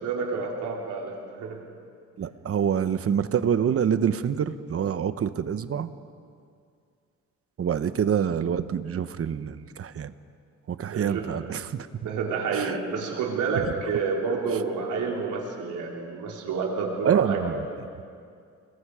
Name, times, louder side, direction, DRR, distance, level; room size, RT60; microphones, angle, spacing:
voice 1, 0.0-1.6 10.9-11.2 12.0-17.4 17.6-17.7, right 5 dB, 85° right, -1 dB, 4.2 m, -29 dB
voice 2, 2.2-5.9 7.6-10.1 10.7-11.9 12.5-12.8 13.5-13.7 17.0-17.7, right 8 dB, 50° right, 12 dB, 1.1 m, -26 dB
29.5 x 22.0 x 5.0 m, 2.3 s
cardioid pair, 90°, 30 cm